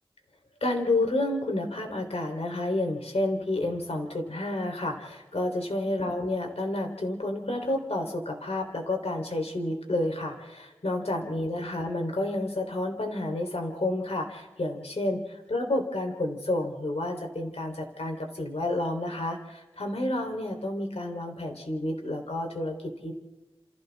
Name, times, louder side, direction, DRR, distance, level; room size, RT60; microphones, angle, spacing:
voice 1, 0.6-23.1, left 1 dB, 80° left, 3 dB, 3.5 m, -30 dB
30.0 x 28.0 x 3.6 m, 1.1 s
wide cardioid pair, 55°, 10 cm